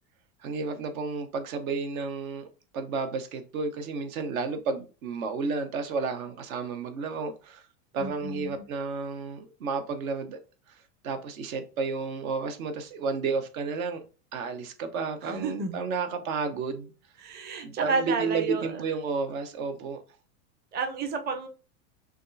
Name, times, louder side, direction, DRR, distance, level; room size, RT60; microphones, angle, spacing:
voice 1, 0.4-2.5 2.7-7.6 7.9-10.4 11.0-14.0 14.3-16.9 17.6-20.0, right 4 dB, 70° right, 1.0 m, -32 dB
voice 2, 7.9-8.6 15.2-15.8 17.2-18.8 20.7-21.5, right 4 dB, 25° right, 0.6 m, -31 dB
6.2 x 2.4 x 2.7 m
hypercardioid pair, 105°, 43 cm